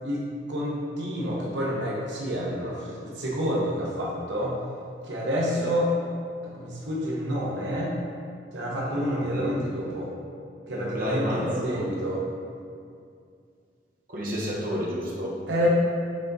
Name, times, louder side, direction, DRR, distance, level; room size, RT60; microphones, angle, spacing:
voice 1, 0.0-4.6 5.0-5.9 6.4-7.9 8.5-10.1 10.7-12.2 15.5-15.7, equal, 85° right, -5 dB, 1.1 m, -28 dB
voice 2, 8.8-9.7 10.7-11.9 14.1-15.3, equal, 50° right, -5 dB, 1.2 m, -31 dB
7.1 x 4.0 x 4.0 m, 2.3 s
head